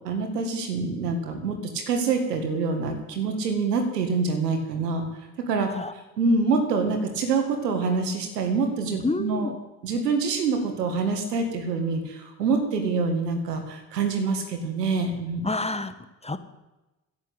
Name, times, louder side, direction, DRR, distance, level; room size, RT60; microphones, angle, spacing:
voice 1, 0.0-5.1 5.5-5.7 6.2-9.5 9.8-15.4, right 4 dB, 85° right, 5 dB, 2.0 m, -26 dB
voice 2, 9.0-9.5 15.4-15.9 16.2-16.4, left 2 dB, 15° left, 11 dB, 1.2 m, -28 dB
10.5 x 9.6 x 8.2 m, 1.0 s
hypercardioid pair, 55°, 47 cm